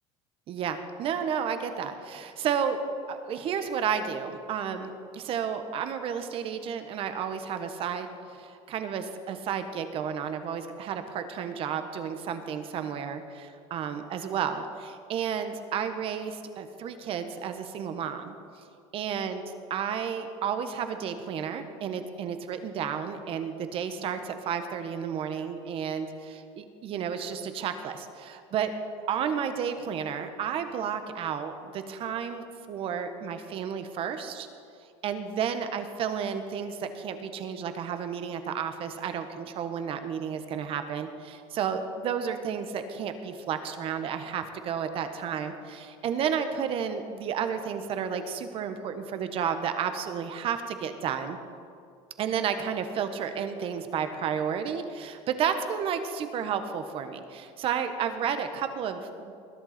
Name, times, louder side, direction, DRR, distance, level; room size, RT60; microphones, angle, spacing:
voice 1, 0.5-2.8 3.1-18.4 18.9-19.4 19.7-28.7 29.1-34.5 35.0-51.4 52.2-59.3, right 7 dB, 45° right, 8 dB, 1.2 m, -32 dB
21.5 x 11.5 x 4.4 m, 2.4 s
cardioid pair, 140°, 13 cm